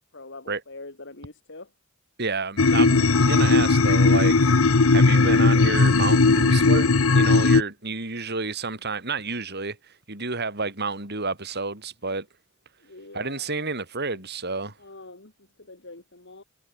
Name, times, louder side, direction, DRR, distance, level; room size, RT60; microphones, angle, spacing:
voice 1, 0.1-1.7 12.8-13.7 14.8-16.4, left 2 dB, 60° left, 3.4 m, -44 dB
voice 2, 2.2-4.5 4.9-12.3 13.1-14.8, right 4 dB, 50° right, 7.2 m, -30 dB
sound 1, 2.6-7.6, left 3 dB, 75° left, 1.0 m, -18 dB
head